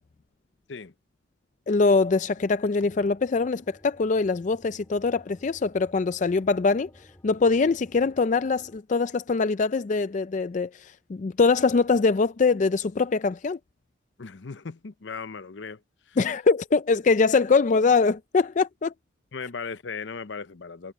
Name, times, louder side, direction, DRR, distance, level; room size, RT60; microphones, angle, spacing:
voice 1, 1.7-6.9 7.2-13.6 16.2-18.9, left 4 dB, 40° left, 0.4 m, -23 dB
sound 1, 2.3-8.8, equal, 15° left, 3.4 m, -56 dB
voice 2, 14.2-15.8 16.1-16.2 19.3-20.9, left 5 dB, 70° left, 0.7 m, -37 dB
head